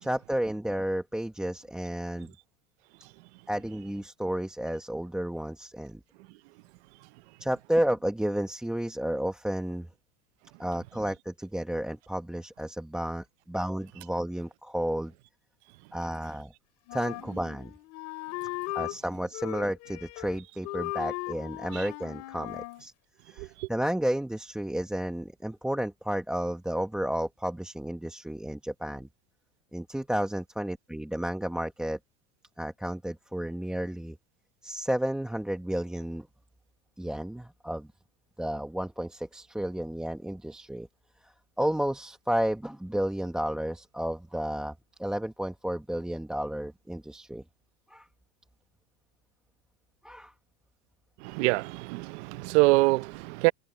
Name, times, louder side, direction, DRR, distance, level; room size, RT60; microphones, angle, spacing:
voice 1, 0.0-2.3 3.5-6.0 7.4-9.9 10.6-15.1 15.9-16.5 16.9-17.7 18.7-22.9 23.3-29.1 29.7-32.0 32.6-34.2 34.6-36.3 37.0-37.9 38.4-40.9 41.2-44.7 45.0-47.4 47.9-48.1 50.0-50.3, right 1 dB, ahead, 1.2 m, -32 dB
Wind instrument woodwind instrument, 16.9-19.0 19.3-20.4 20.6-22.8, left 23 dB, 45° left, 3.6 m, -37 dB
voice 2, 23.4-23.7 51.2-53.5, right 24 dB, 60° right, 0.7 m, -25 dB
supercardioid pair, 165°, 38 cm